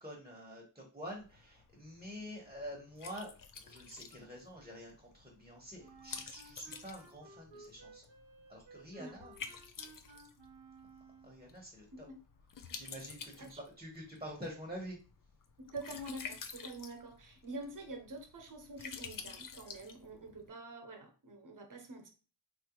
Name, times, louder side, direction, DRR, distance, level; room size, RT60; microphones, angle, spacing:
voice 1, 0.0-3.3 3.6-8.1 8.5-9.3 11.2-12.1 12.7-15.0, equal, 15° right, -1 dB, 1.0 m, -47 dB
Liquid, 1.1-20.5, left 6 dB, 50° left, 0.5 m, -51 dB
Wind instrument woodwind instrument, 5.8-11.5, right 3 dB, 80° right, 0.7 m, -57 dB
voice 2, 15.6-22.1, right 2 dB, 45° right, 3 dB, 0.9 m, -46 dB
3.2 x 2.4 x 2.9 m, 0.35 s
cardioid pair, 45°, 43 cm